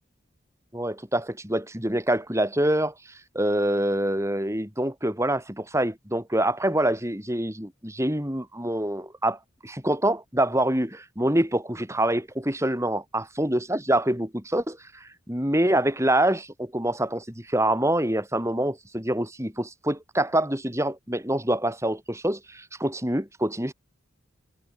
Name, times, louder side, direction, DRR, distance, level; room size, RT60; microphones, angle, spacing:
voice 1, 0.7-2.9 3.3-9.4 9.6-23.7, right 1 dB, 15° right, 4.8 m, -25 dB
head